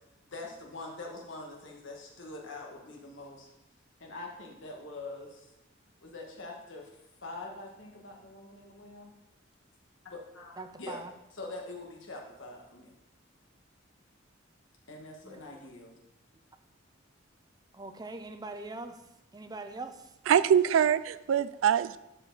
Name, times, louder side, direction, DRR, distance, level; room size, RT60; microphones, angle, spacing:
voice 1, 0.2-3.5 4.0-5.5 6.0-6.9 7.2-9.2 10.0-11.0 11.3-12.9 14.9-15.9, left 2 dB, 75° left, 0 dB, 1.6 m, -44 dB
voice 2, 10.6-11.1 15.2-15.4 17.7-19.0 19.3-20.1, right 3 dB, 20° right, 8 dB, 0.5 m, -42 dB
voice 3, 20.3-22.0, right 8 dB, 80° right, 16 dB, 0.3 m, -24 dB
12.0 x 4.6 x 4.0 m, 0.91 s
head